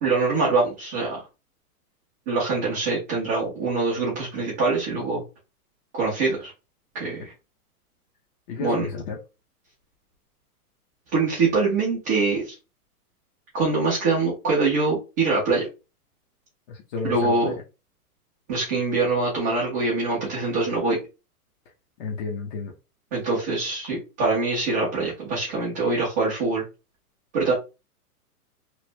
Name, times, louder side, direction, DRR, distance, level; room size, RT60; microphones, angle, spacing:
voice 1, 0.0-1.2 2.3-5.2 5.9-6.5 6.9-7.3 8.6-8.9 11.1-12.5 13.5-15.7 17.0-17.5 18.5-21.0 23.1-26.6 27.3-27.5, right 3 dB, 10° right, -7 dB, 0.4 m, -24 dB
voice 2, 8.5-9.2 16.7-17.6 22.0-22.7, left 4 dB, 30° left, 0 dB, 0.6 m, -31 dB
3.0 x 2.5 x 3.1 m, 0.29 s
hypercardioid pair, 140°, 46 cm